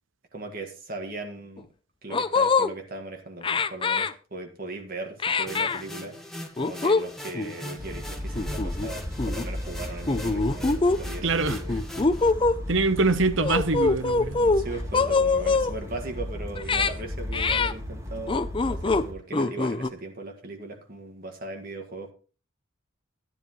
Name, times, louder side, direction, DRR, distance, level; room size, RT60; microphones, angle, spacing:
voice 1, 0.3-1.7 2.0-6.2 6.6-11.7 14.4-22.1, right 2 dB, 45° right, 1.8 m, -38 dB
sound 1, 1.6-1.7 2.1-2.7 3.4-4.1 5.2-5.8 6.6-7.0 7.3-7.5 8.3-8.9 9.2-9.4 10.1-11.0 11.5-12.6 13.4-14.6 14.9-15.7 16.5-16.9 17.3-17.7 18.3-19.1 19.3-19.9, left 3 dB, 25° left, 0.5 m, -23 dB
sound 2, 5.5-12.3, left 1 dB, ahead, 1.5 m, -41 dB
sound 3, 7.8-19.1, left 1 dB, 15° right, 2.3 m, -35 dB
voice 2, 11.2-11.8 12.7-14.4, right 3 dB, 65° right, 0.9 m, -24 dB
14.0 x 10.5 x 3.1 m
head